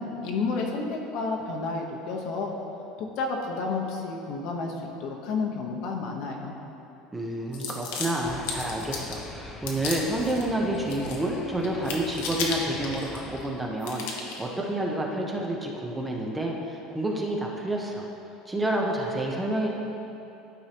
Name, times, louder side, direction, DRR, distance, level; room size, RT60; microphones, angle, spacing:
voice 1, 0.0-2.5 3.0-4.7 5.0-6.5, left 4 dB, 60° left, 1 dB, 0.9 m, -31 dB
voice 2, 7.1-18.1 18.5-19.7, right 1 dB, 10° right, -1 dB, 0.7 m, -29 dB
sound 1, 7.5-9.2 9.7-10.4 10.7-11.4 11.6-13.5 13.8-14.4, left 5 dB, 85° left, 1.0 m, -34 dB
sound 2, 8.2-13.4, left 3 dB, 25° left, 0.5 m, -43 dB
12.0 x 4.7 x 2.9 m, 2.9 s
cardioid pair, 140°, 0 cm